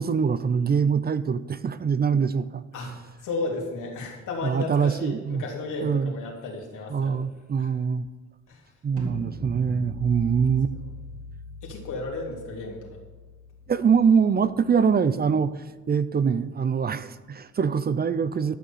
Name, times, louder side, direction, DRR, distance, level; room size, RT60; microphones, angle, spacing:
voice 1, 0.0-2.6 4.4-5.4 5.8-6.1 6.9-8.1 8.8-10.7 13.7-18.6, right 6 dB, 30° right, 14 dB, 0.5 m, -24 dB
voice 2, 2.7-7.2 7.6-7.7 8.5-8.7 11.6-12.9, left 3 dB, 85° left, -2 dB, 3.3 m, -34 dB
sound 1, 9.0-14.9, left 1 dB, 50° right, 2.2 m, -40 dB
12.5 x 6.5 x 7.2 m, 1.2 s
cardioid pair, 90°, 30 cm